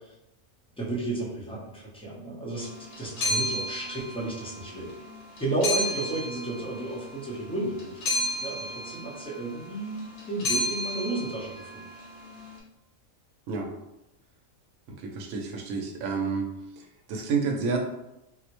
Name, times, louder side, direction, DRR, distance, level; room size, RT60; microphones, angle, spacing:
voice 1, 0.8-2.7 3.0-4.9 5.4-11.8, right 2 dB, 5° left, -5 dB, 0.5 m, -33 dB
sound 1, 2.6-12.5, left 1 dB, 65° left, 1.0 m, -33 dB
voice 2, 14.9-16.5 16.8-17.8, right 5 dB, 85° right, 2 dB, 1.0 m, -30 dB
4.0 x 2.1 x 2.9 m, 0.91 s
omnidirectional pair, 1.4 m